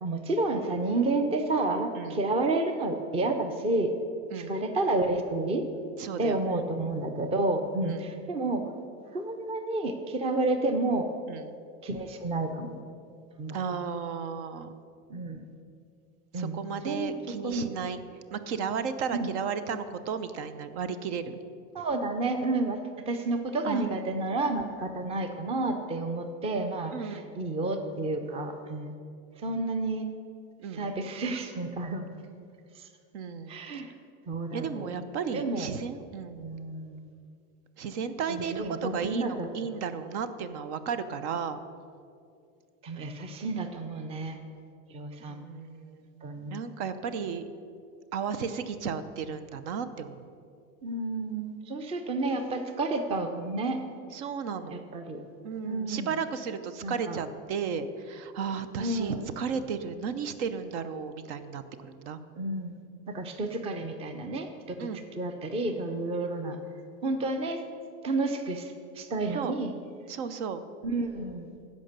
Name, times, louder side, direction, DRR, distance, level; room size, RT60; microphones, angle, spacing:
voice 1, 0.0-3.9 4.3-5.6 6.2-8.6 9.1-11.1 11.8-12.8 13.4-13.6 15.1-15.4 16.3-17.1 17.4-17.7 19.1-19.3 21.7-28.9 29.4-30.1 30.7-32.1 32.8-32.9 33.5-33.9 34.3-34.9 35.3-35.7 36.4-37.1 38.3-39.5 42.8-44.4 44.9-45.4 46.2-46.5 50.8-53.8 54.7-55.2 55.6-56.1 56.8-57.2 58.8-59.2 62.3-62.8 63.1-66.6 67.0-67.6 68.0-69.7 70.8-71.5, right 2 dB, 15° right, 7 dB, 0.5 m, -30 dB
voice 2, 6.0-6.6 7.8-8.1 11.3-11.5 13.5-14.8 16.3-18.0 18.3-21.4 23.6-23.9 26.9-27.3 30.6-31.0 33.1-33.9 34.5-36.6 37.8-41.6 45.3-47.4 48.1-50.3 54.1-54.8 55.4-62.2 64.8-65.0 69.3-69.5 70.1-70.6, right 6 dB, 65° right, 11 dB, 0.8 m, -34 dB
15.5 x 5.2 x 6.6 m, 2.4 s
supercardioid pair, 155°, 36 cm